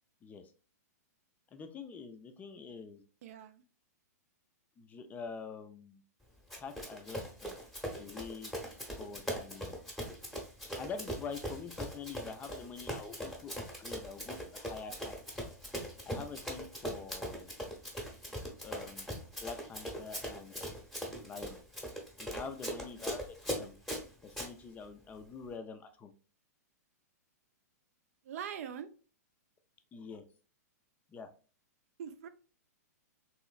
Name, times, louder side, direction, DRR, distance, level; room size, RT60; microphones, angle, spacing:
voice 1, 1.5-3.0 4.8-6.0 6.6-7.6 7.9-8.5 9.0-9.8 10.8-15.2 16.1-17.5 18.6-19.1 19.4-20.8 21.2-21.6 22.2-23.8 24.2-26.1 29.9-30.2 31.1-31.3, left 5 dB, 20° left, 7 dB, 0.4 m, -46 dB
voice 2, 3.2-3.6 28.2-28.9 32.0-32.3, right 8 dB, 60° right, 10 dB, 0.4 m, -42 dB
Run, 6.5-24.5, equal, ahead, 0.8 m, -41 dB
3.0 x 3.0 x 2.3 m, 0.37 s
hypercardioid pair, 125°, 9 cm